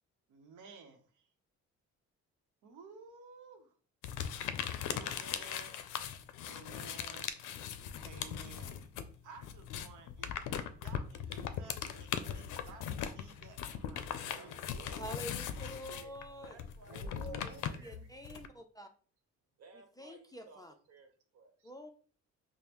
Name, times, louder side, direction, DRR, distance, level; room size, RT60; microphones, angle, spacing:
voice 1, 0.3-1.3 2.6-3.8 4.9-5.8 6.4-7.6 8.0-8.9 9.2-14.5 16.9-17.9 20.5-20.6 21.6-21.7, right 5 dB, 85° right, 0.8 m, -55 dB
sound 1, 4.0-9.1 9.4-18.5, left 9 dB, 90° left, 0.5 m, -39 dB
voice 2, 14.1-15.2 15.9-17.5 17.7-18.0 18.3-18.4 19.6-21.5, right 5 dB, 55° right, 1.0 m, -58 dB
voice 3, 14.9-16.6 16.9-17.6 17.8-18.9 20.0-20.7 21.6-21.9, equal, 15° left, 0.4 m, -47 dB
5.1 x 2.1 x 2.9 m
cardioid pair, 90°, 30 cm